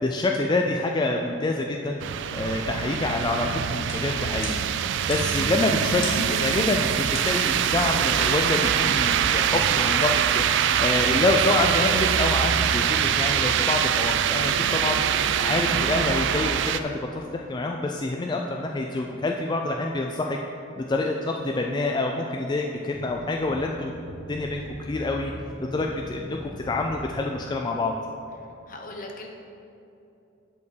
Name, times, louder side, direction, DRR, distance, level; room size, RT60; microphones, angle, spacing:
voice 1, 0.0-2.0 2.3-4.6 5.1-10.4 10.8-15.0 15.4-20.4 20.8-23.9 24.3-25.3 25.6-27.9, left 2 dB, 20° left, 1 dB, 0.3 m, -27 dB
sound 1, 2.0-16.8, right 9 dB, 60° right, 0.3 m, -24 dB
sound 2, 3.8-9.5, left 3 dB, 70° left, 1.8 m, -43 dB
sound 3, 22.9-27.5, equal, 10° right, 0.9 m, -40 dB
voice 2, 28.7-29.3, left 2 dB, 45° left, 2 dB, 0.9 m, -38 dB
8.4 x 4.4 x 6.7 m, 2.7 s
head